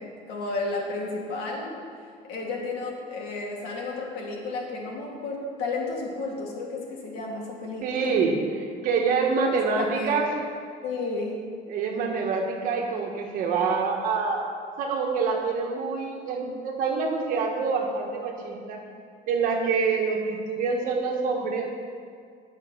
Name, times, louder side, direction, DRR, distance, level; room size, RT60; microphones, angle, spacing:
voice 1, 0.0-1.7 2.2-8.1 9.5-10.2 10.8-11.4, left 3 dB, 80° left, -2 dB, 2.1 m, -32 dB
voice 2, 7.8-10.3 11.7-14.4 14.8-18.8 19.3-21.7, right 5 dB, 55° right, 1 dB, 1.4 m, -26 dB
9.2 x 6.4 x 6.2 m, 2.2 s
cardioid pair, 175°, 17 cm